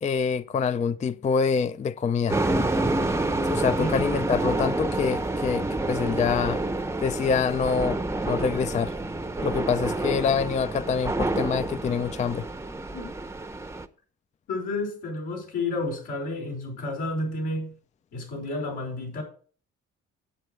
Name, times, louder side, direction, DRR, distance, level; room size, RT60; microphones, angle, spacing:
voice 1, 0.0-2.4 3.4-6.6 7.0-8.9 9.4-12.5, left 6 dB, 25° left, 0.4 m, -26 dB
sound 1, 2.3-13.8, right 2 dB, 10° right, 0.7 m, -28 dB
voice 2, 14.5-17.7 18.1-19.2, left 2 dB, 80° left, 5.2 m, -31 dB
8.5 x 8.3 x 4.5 m
cardioid pair, 90°, 30 cm